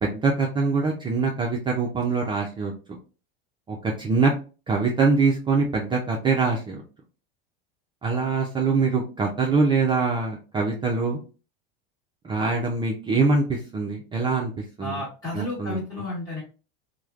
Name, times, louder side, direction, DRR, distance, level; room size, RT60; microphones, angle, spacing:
voice 1, 0.0-3.0 3.7-4.3 4.7-6.8 8.0-11.2 12.2-14.5 14.8-15.0 15.3-15.8, right 4 dB, 15° right, -1 dB, 0.4 m, -24 dB
voice 2, 14.8-16.4, left 1 dB, 15° left, -7 dB, 1.2 m, -32 dB
3.1 x 2.1 x 2.3 m, 0.34 s
supercardioid pair, 120°, 30 cm